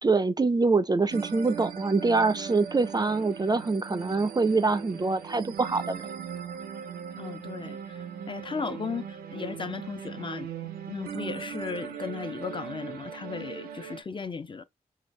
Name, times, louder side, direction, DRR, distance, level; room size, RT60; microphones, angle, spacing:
voice 1, 0.0-6.1, right 3 dB, 25° right, 0.4 m, -25 dB
sound 1, 1.1-14.0, right 7 dB, 90° right, 0.4 m, -39 dB
voice 2, 7.2-14.6, left 5 dB, 30° left, 0.5 m, -36 dB
3.0 x 2.2 x 3.2 m
supercardioid pair, 40°, 16 cm